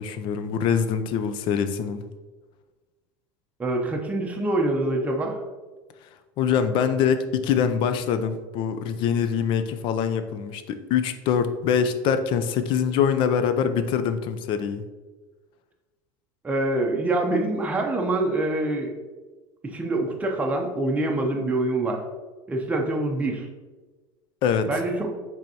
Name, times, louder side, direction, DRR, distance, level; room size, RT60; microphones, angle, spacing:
voice 1, 0.0-2.0 6.4-14.8 24.4-24.7, left 7 dB, 55° left, 10 dB, 0.4 m, -24 dB
voice 2, 3.6-5.4 16.4-18.9 19.6-22.0 22.5-23.5 24.7-25.1, right 2 dB, 15° right, 1 dB, 0.7 m, -25 dB
5.1 x 3.4 x 2.8 m, 1.3 s
supercardioid pair, 115°, 11 cm